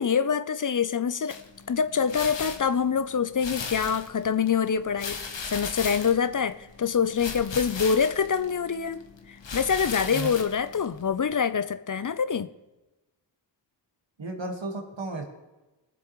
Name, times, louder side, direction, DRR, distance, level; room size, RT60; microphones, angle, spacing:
voice 1, 0.0-1.4 1.7-5.2 5.5-12.5, left 6 dB, 45° left, 13 dB, 0.5 m, -25 dB
sound 1, 1.3-11.3, left 5 dB, 80° left, 1.1 m, -38 dB
voice 2, 14.2-15.2, right 2 dB, 85° right, 2 dB, 1.8 m, -33 dB
20.0 x 7.0 x 3.1 m, 1.1 s
cardioid pair, 40°, 44 cm